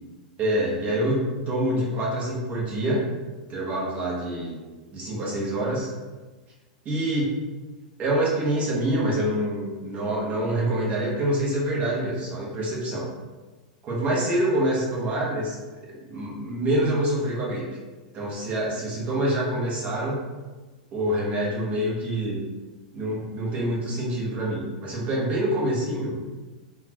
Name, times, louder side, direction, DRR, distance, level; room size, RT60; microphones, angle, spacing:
voice 1, 0.4-3.0 3.5-4.6 4.9-5.9 6.8-7.4 8.0-13.1 13.8-15.6 15.9-17.6 18.1-20.2 20.9-22.4 22.9-26.2, right 1 dB, 35° right, -4 dB, 1.1 m, -26 dB
3.7 x 2.3 x 2.9 m, 1.3 s
hypercardioid pair, 105°, 4 cm